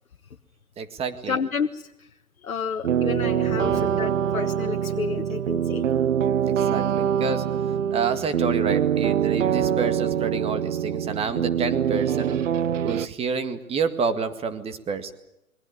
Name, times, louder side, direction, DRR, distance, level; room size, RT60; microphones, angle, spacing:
voice 1, 0.8-1.4 3.4-4.0 6.5-7.5 7.9-12.5 12.8-15.1, right 5 dB, 15° right, 10 dB, 1.9 m, -29 dB
voice 2, 1.3-1.8 2.4-5.8, left 6 dB, 75° left, 4 dB, 1.6 m, -30 dB
sound 1, 2.8-13.1, right 9 dB, 60° right, 1.0 m, -24 dB
28.5 x 23.0 x 6.9 m, 0.86 s
figure-of-eight pair, 130°, 42 cm